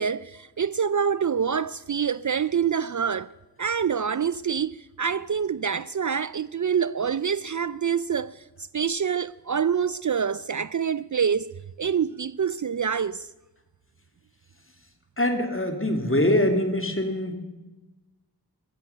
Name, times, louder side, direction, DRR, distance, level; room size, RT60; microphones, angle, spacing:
voice 1, 0.0-3.3 3.6-8.4 8.7-11.5 11.8-13.3, right 7 dB, 50° right, 0.4 m, -26 dB
voice 2, 15.2-17.4, left 1 dB, 30° left, 2.6 m, -23 dB
15.5 x 13.0 x 6.8 m
wide cardioid pair, 50°, 39 cm